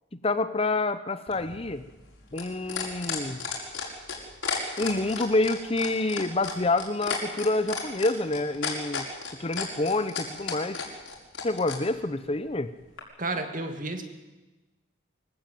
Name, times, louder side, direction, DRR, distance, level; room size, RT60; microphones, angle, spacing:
voice 1, 0.2-1.9 2.3-3.4 4.8-9.0 9.4-10.8 11.4-12.7, left 2 dB, 30° left, 12 dB, 0.8 m, -27 dB
sound 1, 1.3-11.8 13.0-13.1, left 6 dB, 70° left, 5.5 m, -33 dB
voice 2, 13.2-14.0, right 2 dB, 40° right, 6 dB, 2.4 m, -31 dB
24.0 x 15.0 x 9.2 m, 1.1 s
head